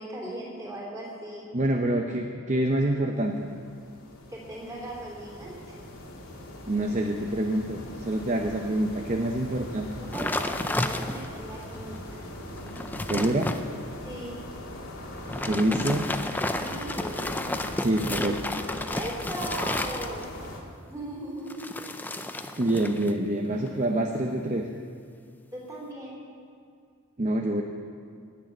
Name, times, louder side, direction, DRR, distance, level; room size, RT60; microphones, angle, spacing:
voice 1, 0.0-1.5 4.3-5.7 10.0-12.2 14.0-14.4 16.6-17.3 18.9-20.3 20.9-21.9 25.5-26.2, right 1 dB, 15° right, -5 dB, 3.3 m, -38 dB
voice 2, 1.5-3.5 6.7-10.0 13.1-13.5 15.5-16.1 17.8-18.4 22.6-24.7 27.2-27.6, right 1 dB, 35° right, 3 dB, 0.6 m, -26 dB
sound 1, 3.1-20.6, left 1 dB, 80° left, 2.2 m, -41 dB
sound 2, 10.1-11.4 12.0-12.1 12.5-13.6 15.2-20.5 21.5-23.2 23.4-23.8, left 1 dB, 10° left, 0.4 m, -32 dB
19.0 x 6.5 x 7.8 m, 2.2 s
head